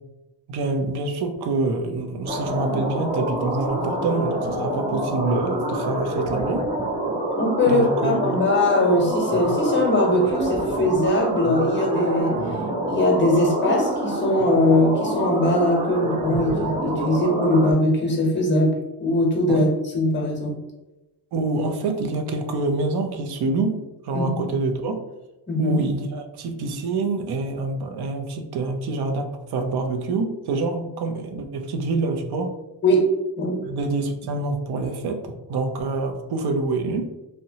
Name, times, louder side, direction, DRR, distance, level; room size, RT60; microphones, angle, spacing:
voice 1, 0.5-6.7 7.7-8.4 19.5-19.7 21.3-24.9 25.6-32.5 33.6-37.1, right 3 dB, 65° right, 5 dB, 0.5 m, -26 dB
sound 1, 2.3-17.7, right 1 dB, 15° right, 0.4 m, -26 dB
voice 2, 7.4-12.4 12.9-19.7 19.9-20.6 24.1-24.5 25.5-25.8 32.8-33.6, left 1 dB, 25° left, 0 dB, 0.7 m, -21 dB
2.7 x 2.1 x 2.7 m, 0.99 s
cardioid pair, 135°, 42 cm